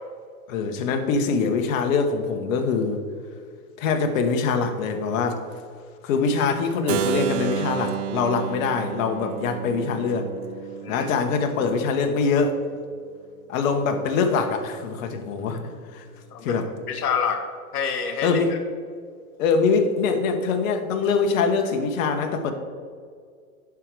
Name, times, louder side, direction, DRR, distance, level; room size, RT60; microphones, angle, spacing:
voice 1, 0.5-3.0 3.8-5.4 6.0-10.3 10.9-12.6 13.5-16.1 16.4-16.7 18.2-18.5 19.4-22.5, left 5 dB, 60° left, 5 dB, 1.2 m, -23 dB
Keyboard (musical), 6.9-12.7, right 11 dB, 40° right, 0.5 m, -32 dB
voice 2, 16.3-16.6 16.9-17.4 17.7-18.6, left 6 dB, 85° left, 5 dB, 1.0 m, -27 dB
11.0 x 4.8 x 4.8 m, 2.1 s
hypercardioid pair, 125°, 45 cm